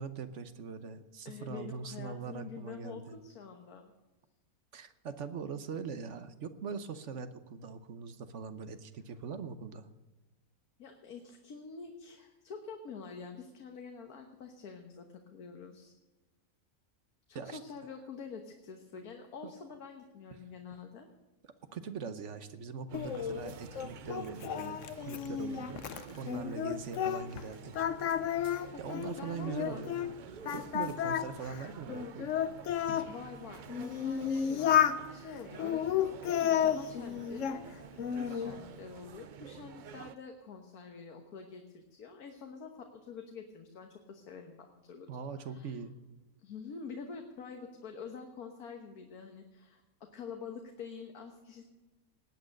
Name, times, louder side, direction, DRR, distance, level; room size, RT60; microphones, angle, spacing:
voice 1, 0.0-3.0 4.7-9.9 17.3-17.6 19.4-19.5 21.7-27.8 28.8-30.0 30.3-32.3 45.1-45.9, right 6 dB, 60° right, 11 dB, 1.2 m, -42 dB
voice 2, 1.3-3.9 10.8-15.9 17.3-21.1 28.7-29.8 33.1-45.1 45.4-45.8 46.4-51.6, left 5 dB, 90° left, 4 dB, 1.7 m, -47 dB
Singing, 22.9-27.4 27.7-30.1 30.5-33.1 33.7-35.0 35.6-37.6 38.0-38.6, left 9 dB, 65° left, 1.0 m, -32 dB
sound 1, 22.9-40.2, right 8 dB, 85° right, 0.4 m, -50 dB
19.0 x 8.7 x 6.5 m, 1.1 s
omnidirectional pair, 1.5 m